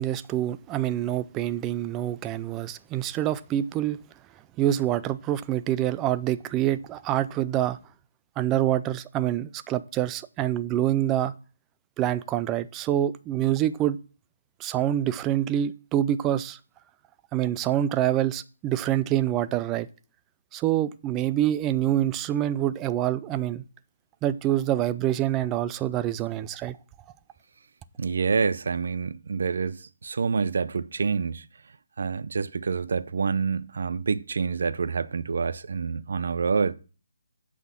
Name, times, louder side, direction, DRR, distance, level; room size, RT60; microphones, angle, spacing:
voice 1, 0.0-4.0 4.6-7.8 8.4-11.3 12.0-14.0 14.6-16.6 17.3-19.9 20.5-23.6 24.2-26.8, right 12 dB, 15° right, 0.4 m, -26 dB
voice 2, 28.0-31.5 32.0-36.7, right 5 dB, 65° right, 0.6 m, -27 dB
8.3 x 5.8 x 5.9 m
hypercardioid pair, 165°, 0 cm